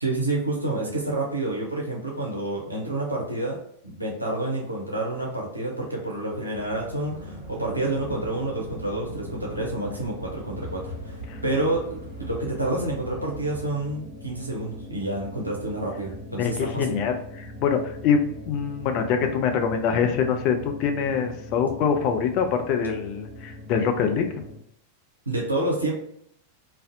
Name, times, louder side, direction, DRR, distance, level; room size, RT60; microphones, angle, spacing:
voice 1, 0.0-3.6 3.8-11.2 11.4-17.0 25.3-25.9, right 2 dB, 85° right, -2 dB, 0.5 m, -28 dB
sound 1, 6.5-13.7, equal, 65° right, 0.9 m, -41 dB
sound 2, 7.9-24.6, left 1 dB, 40° right, 1.1 m, -42 dB
voice 2, 16.4-24.3, left 6 dB, 40° left, 5 dB, 0.3 m, -24 dB
2.5 x 2.0 x 2.6 m, 0.70 s
figure-of-eight pair, 90°, 0 cm